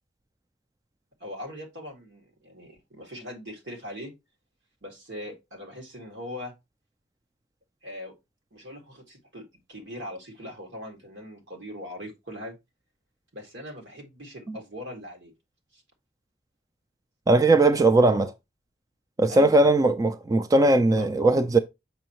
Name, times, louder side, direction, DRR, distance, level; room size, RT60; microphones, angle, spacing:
voice 1, 1.2-4.1 4.8-6.5 7.8-8.1 8.5-12.6 13.3-15.3 15.7-15.8 17.7-18.3 19.3-19.9 21.0-21.1, left 1 dB, 75° right, 2.0 m, -40 dB
voice 2, 17.3-18.3 19.2-21.6, right 2 dB, 20° right, 0.3 m, -19 dB
6.8 x 5.5 x 3.0 m
head